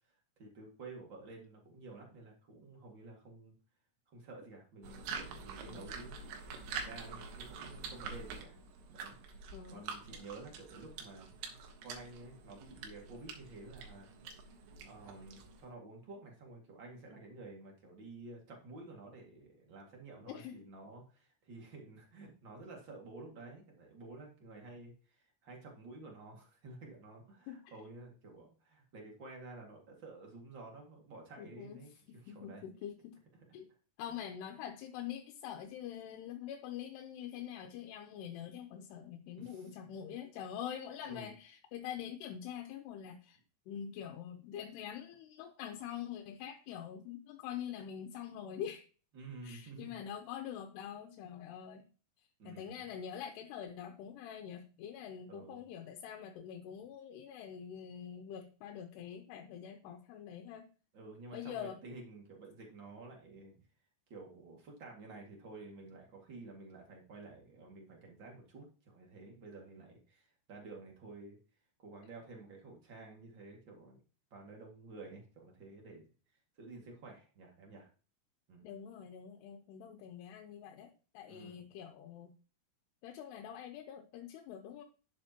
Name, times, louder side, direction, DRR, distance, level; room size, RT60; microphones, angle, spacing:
voice 1, 0.1-3.5 4.1-6.2 6.7-8.6 8.9-9.2 9.7-14.1 14.8-32.6 33.3-33.4 39.4-39.9 41.0-41.3 49.1-50.0 52.4-52.8 55.3-55.6 60.9-63.6 64.1-71.4 71.8-74.0 74.3-76.0 76.6-77.9 78.5-78.7 81.3-81.7, right 3 dB, 40° right, 0 dB, 2.0 m, -51 dB
sound 1, 4.8-15.7, right 5 dB, 85° right, 3.5 m, -46 dB
voice 2, 9.5-9.8 20.3-20.6 27.5-27.7 31.4-31.8 32.3-33.2 33.5-33.7 34.0-43.4 43.7-48.8 49.4-51.9 52.4-60.7 61.3-61.8 78.6-82.3 83.0-84.8, left 9 dB, 85° left, 5 dB, 2.9 m, -45 dB
11.0 x 7.7 x 2.9 m, 0.37 s
omnidirectional pair, 4.7 m